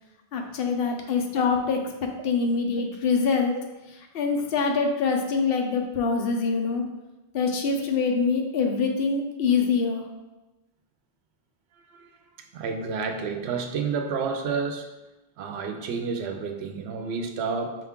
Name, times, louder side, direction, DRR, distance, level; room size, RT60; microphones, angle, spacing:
voice 1, 0.3-1.8 2.2-3.5 4.1-6.8 7.3-10.1, left 5 dB, 70° left, 3 dB, 0.8 m, -24 dB
voice 2, 11.7-12.1 12.4-14.9 15.4-17.9, right 5 dB, 90° right, 5 dB, 0.8 m, -30 dB
5.0 x 2.3 x 3.6 m, 1.1 s
omnidirectional pair, 1.0 m